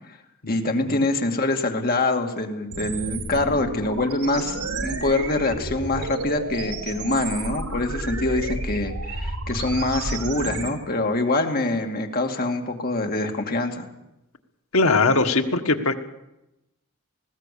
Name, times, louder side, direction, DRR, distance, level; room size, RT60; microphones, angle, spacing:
voice 1, 0.5-13.9, left 2 dB, 40° left, 4 dB, 2.4 m, -25 dB
sound 1, 2.7-10.7, right 2 dB, 75° right, 2.9 m, -31 dB
voice 2, 14.7-16.0, left 3 dB, 70° left, 7 dB, 1.6 m, -20 dB
19.5 x 17.0 x 8.5 m, 0.91 s
head